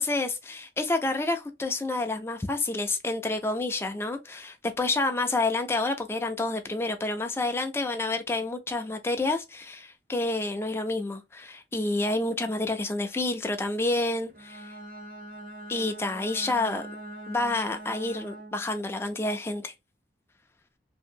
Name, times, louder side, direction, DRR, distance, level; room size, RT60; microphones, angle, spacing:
voice 1, 0.0-14.7 15.7-16.8 17.3-19.7, left 2 dB, 15° left, 0.3 m, -29 dB
Bowed string instrument, 14.3-18.8, right 1 dB, 50° right, 0.7 m, -42 dB
2.8 x 2.7 x 2.6 m
head